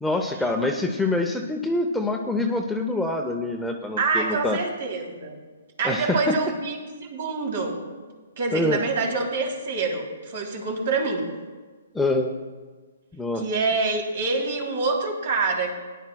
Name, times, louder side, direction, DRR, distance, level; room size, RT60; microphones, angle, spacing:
voice 1, 0.0-4.6 5.8-6.4 8.5-8.8 11.9-12.3 13.2-13.4, left 2 dB, 5° left, 2 dB, 0.6 m, -25 dB
voice 2, 4.0-5.4 5.8-7.8 8.4-11.3 13.3-15.8, right 4 dB, 60° right, 1 dB, 3.0 m, -26 dB
18.0 x 11.0 x 2.3 m, 1.4 s
hypercardioid pair, 150°, 0 cm